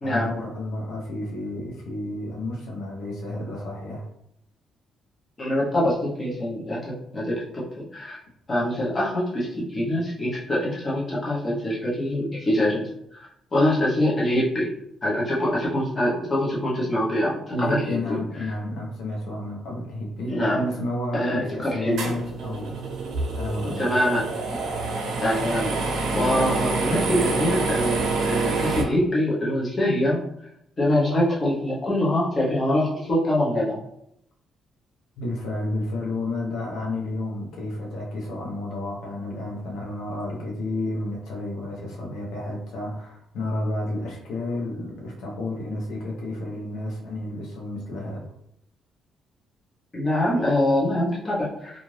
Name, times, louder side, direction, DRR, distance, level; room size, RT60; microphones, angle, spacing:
voice 1, 0.0-4.1 17.5-22.8 23.3-23.9 35.2-48.3, left 1 dB, 80° left, -2 dB, 0.8 m, -31 dB
voice 2, 5.4-8.2 8.5-13.2 13.5-14.7 15.0-18.2 20.3-20.7 21.1-22.1 23.6-24.2 24.5-24.6 25.2-25.7 26.1-30.2 30.8-33.8 49.9-51.7, left 1 dB, 20° left, -6 dB, 0.7 m, -24 dB
sound 1, 22.0-28.8, right 3 dB, 75° right, 0.6 m, -27 dB
2.5 x 2.5 x 3.2 m, 0.76 s
cardioid pair, 180°, 0 cm